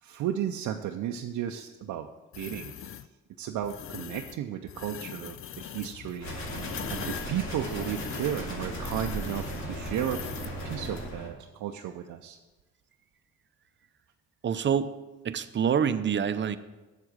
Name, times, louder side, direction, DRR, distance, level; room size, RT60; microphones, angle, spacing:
voice 1, 0.0-2.1 2.4-3.0 3.4-6.3 6.9-12.4, right 10 dB, 75° right, 3 dB, 0.6 m, -34 dB
sound 1, 2.3-3.1 3.6-4.4 4.7-10.6, left 10 dB, 45° left, 0.4 m, -42 dB
sound 2, 6.2-11.3, equal, 70° left, 2.9 m, -36 dB
voice 2, 14.4-14.9 15.2-16.6, right 7 dB, 40° right, 12 dB, 0.6 m, -26 dB
7.6 x 7.3 x 6.3 m, 1.1 s
cardioid pair, 90°, 30 cm